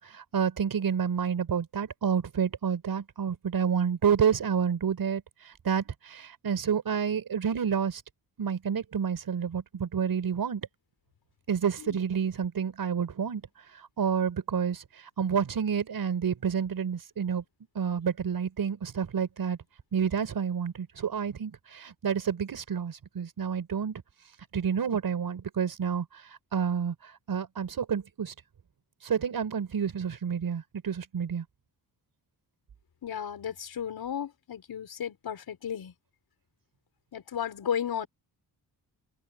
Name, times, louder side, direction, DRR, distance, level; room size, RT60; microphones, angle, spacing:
voice 1, 0.0-8.0 8.4-10.7 11.5-13.4 14.0-17.4 17.7-19.6 19.9-24.0 24.5-26.1 26.5-26.9 27.3-28.3 29.0-31.4, right 7 dB, 60° right, 5.7 m, -29 dB
voice 2, 33.0-35.9 37.1-38.1, left 8 dB, 70° left, 5.4 m, -34 dB
cardioid pair, 90°, 39 cm